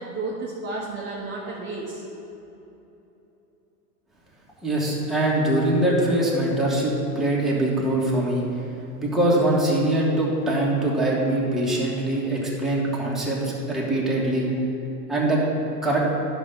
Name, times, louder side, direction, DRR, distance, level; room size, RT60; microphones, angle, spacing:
voice 1, 0.0-2.0, right 3 dB, 20° right, -5 dB, 1.0 m, -32 dB
voice 2, 4.6-8.4 9.0-14.5 15.1-15.4 15.8-16.0, right 1 dB, ahead, -6 dB, 1.7 m, -23 dB
10.5 x 5.8 x 3.9 m, 3.0 s
hypercardioid pair, 110°, 50 cm